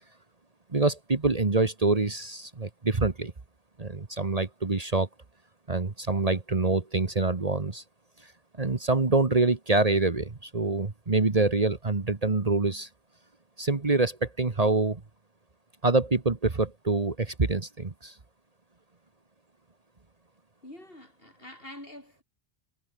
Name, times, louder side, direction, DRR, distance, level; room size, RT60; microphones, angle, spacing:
voice 1, 0.7-3.3 3.8-5.1 5.7-7.8 8.6-12.9 13.6-15.0 15.8-18.1, right 3 dB, 35° right, 1.4 m, -26 dB
voice 2, 20.6-22.2, left 1 dB, 60° left, 7.4 m, -46 dB
omnidirectional pair, 1.1 m